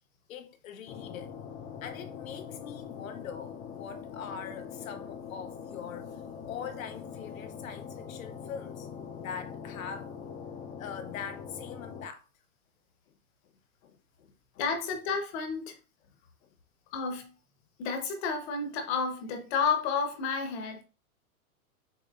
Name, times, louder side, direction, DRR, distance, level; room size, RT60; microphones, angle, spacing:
voice 1, 0.3-1.4 1.8-10.2 10.8-12.3 13.1-13.2 13.4-13.5 13.8-14.6 16.4-16.5, left 7 dB, 65° left, 1.0 m, -43 dB
sound 1, 0.9-12.1, left 7 dB, 25° left, 0.6 m, -43 dB
voice 2, 14.6-15.8 16.9-17.3 17.8-20.8, left 5 dB, 45° left, 1.3 m, -31 dB
6.8 x 2.9 x 2.5 m
hypercardioid pair, 105°, 43 cm